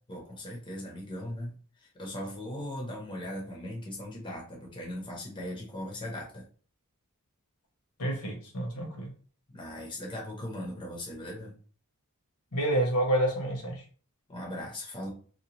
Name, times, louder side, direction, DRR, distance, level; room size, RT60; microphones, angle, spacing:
voice 1, 0.1-6.4 9.5-11.5 14.3-15.1, left 1 dB, 20° left, -2 dB, 0.7 m, -39 dB
voice 2, 8.0-9.1 12.5-13.8, right 1 dB, 80° left, 0 dB, 1.1 m, -28 dB
2.7 x 2.1 x 2.9 m, 0.42 s
head